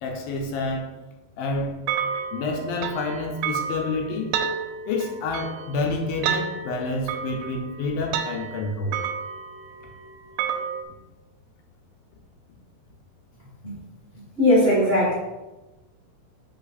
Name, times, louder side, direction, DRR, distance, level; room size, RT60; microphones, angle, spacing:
voice 1, 0.0-0.9 1.4-1.8 2.3-4.3 4.9-9.0, left 3 dB, 75° left, 1 dB, 2.5 m, -28 dB
sound 1, 1.9-10.8, right 7 dB, 80° right, 2.2 m, -31 dB
voice 2, 14.4-15.1, left 1 dB, 65° right, -8 dB, 0.6 m, -18 dB
6.0 x 5.6 x 4.1 m, 1.1 s
omnidirectional pair, 4.5 m